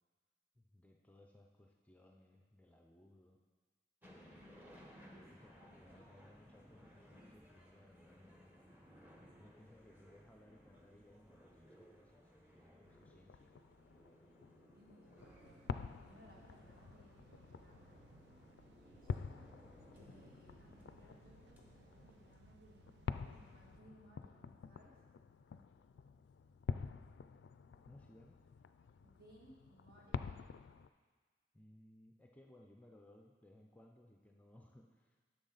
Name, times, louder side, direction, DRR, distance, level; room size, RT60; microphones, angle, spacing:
voice 1, 0.5-3.4 5.2-8.5 9.4-13.5 27.8-28.4 31.5-35.2, left 1 dB, 10° left, 1 dB, 0.4 m, -63 dB
sound 1, 4.0-22.4, equal, 10° right, 1.0 m, -62 dB
voice 2, 4.9-5.2 5.6-6.1 14.7-15.6 16.0-18.1 18.5-19.5 19.9-22.9 23.2-25.0 29.0-30.4, right 1 dB, 55° right, -4 dB, 2.1 m, -64 dB
sound 2, 12.9-30.9, left 5 dB, 85° left, 0.3 m, -48 dB
sound 3, 15.2-23.8, right 5 dB, 75° right, 0.3 m, -66 dB
10.5 x 6.5 x 3.9 m, 1.5 s
head